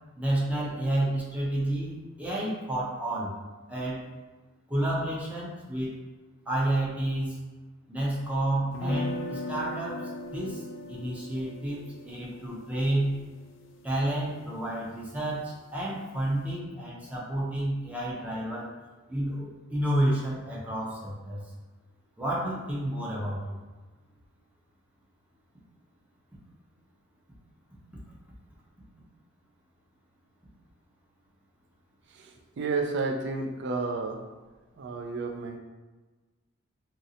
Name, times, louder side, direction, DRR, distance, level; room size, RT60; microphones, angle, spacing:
voice 1, 0.2-3.4 3.7-4.0 4.7-5.9 6.5-7.4 7.9-13.2 13.8-18.7 19.1-21.4 22.2-23.5, right 1 dB, 5° right, -6 dB, 0.5 m, -30 dB
sound 1, 8.7-14.7, left 1 dB, 65° left, 0.3 m, -39 dB
voice 2, 32.6-34.2 34.8-35.6, right 3 dB, 60° right, 3 dB, 0.4 m, -30 dB
3.1 x 2.7 x 2.7 m, 1.3 s
head